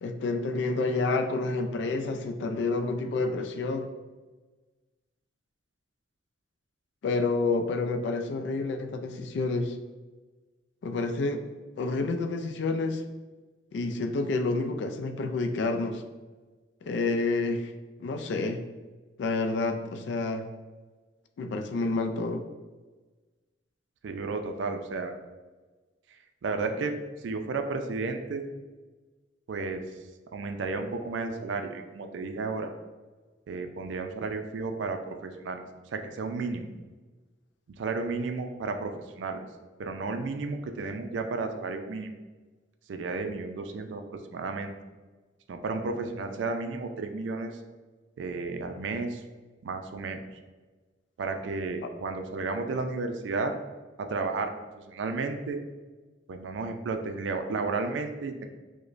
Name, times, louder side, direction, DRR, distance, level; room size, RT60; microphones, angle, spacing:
voice 1, 0.0-3.9 7.0-9.8 10.8-11.4 11.8-13.0 13.7-16.0 16.8-17.7 18.0-18.6 19.2-20.4 21.4-22.4, left 3 dB, 65° left, 7 dB, 0.3 m, -29 dB
voice 2, 24.0-25.2 26.4-26.9 27.2-28.4 29.5-29.8 30.3-32.7 33.5-35.6 35.9-36.6 37.8-38.9 39.2-39.4 39.8-42.1 42.9-44.0 44.3-44.7 45.5-47.5 48.2-49.2 49.6-50.2 51.2-53.5 54.0-54.5 54.9-55.6 56.3-58.5, right 3 dB, 75° right, 6 dB, 0.4 m, -32 dB
4.9 x 2.1 x 2.5 m, 1.3 s
head